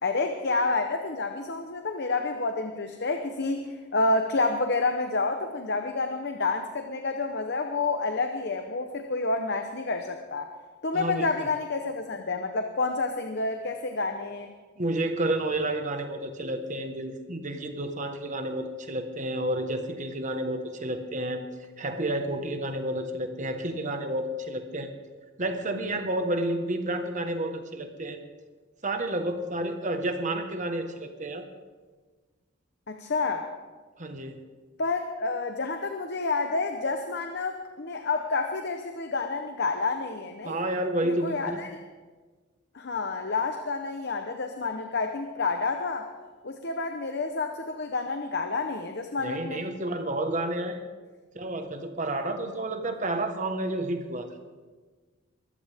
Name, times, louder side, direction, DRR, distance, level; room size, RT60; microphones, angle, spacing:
voice 1, 0.0-10.5 10.8-14.5 32.9-33.5 34.8-40.6 41.0-41.8 42.7-46.1 46.4-49.6, left 3 dB, 55° left, 5 dB, 0.9 m, -29 dB
voice 2, 10.9-11.3 14.8-21.4 21.8-24.9 25.4-28.2 28.8-31.4 34.0-34.4 40.4-41.7 49.2-50.8 51.3-54.3, right 1 dB, 40° right, 6 dB, 1.4 m, -30 dB
22.0 x 14.0 x 3.6 m, 1.4 s
head